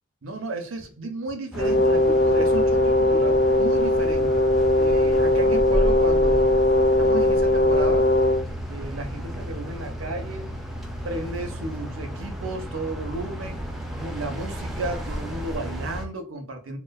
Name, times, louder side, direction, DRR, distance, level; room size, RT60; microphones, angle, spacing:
voice 1, 0.2-4.4 4.8-6.5 7.0-8.1 8.7-10.5 11.0-13.6 13.9-16.8, right 2 dB, 85° right, 0.6 m, -33 dB
Brass instrument, 1.5-8.5, left 2 dB, 65° left, 0.7 m, -20 dB
sound 1, 1.5-16.1, equal, ahead, 0.3 m, -32 dB
2.9 x 2.0 x 2.2 m
head